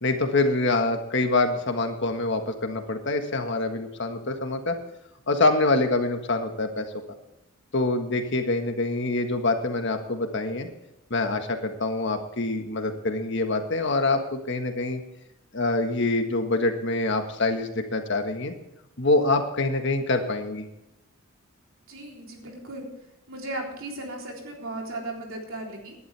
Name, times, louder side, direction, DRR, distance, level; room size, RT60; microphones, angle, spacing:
voice 1, 0.0-4.8 5.3-6.9 7.7-10.7 11.1-15.0 15.5-18.5 19.0-20.7, left 2 dB, 55° left, 5 dB, 1.6 m, -25 dB
voice 2, 21.9-22.9 23.3-26.0, right 2 dB, 65° right, 0 dB, 3.6 m, -36 dB
18.5 x 11.5 x 3.4 m, 0.88 s
head